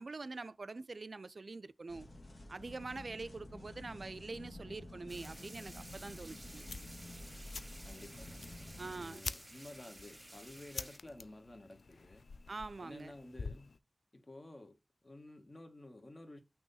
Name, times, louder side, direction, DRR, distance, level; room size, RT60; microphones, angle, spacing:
voice 1, 0.0-2.1 2.5-6.6 8.8-9.2 12.5-13.1, right 3 dB, 60° right, 0.4 m, -45 dB
sound 1, 1.9-9.0, left 1 dB, 60° left, 1.6 m, -50 dB
sound 2, 5.1-11.0, right 1 dB, 20° right, 0.6 m, -54 dB
sound 3, 6.7-13.8, left 4 dB, 75° left, 0.4 m, -48 dB
voice 2, 7.8-12.3 12.8-13.8 14.1-16.4, left 1 dB, 35° left, 1.4 m, -53 dB
6.1 x 3.0 x 5.5 m
wide cardioid pair, 90°, 0 cm